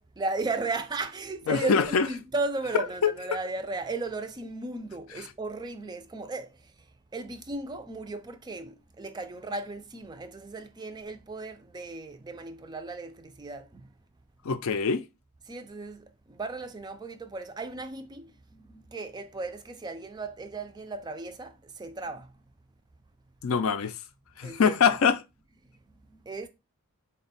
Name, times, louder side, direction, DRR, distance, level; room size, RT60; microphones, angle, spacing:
voice 1, 0.2-6.7 7.1-13.9 15.5-22.4 24.4-25.0 26.1-26.5, right 3 dB, 20° right, 0.3 m, -36 dB
voice 2, 1.5-2.1 2.7-3.1 14.4-15.0 23.4-24.0 24.4-25.2, left 6 dB, 65° left, 0.4 m, -24 dB
4.2 x 2.2 x 3.9 m
head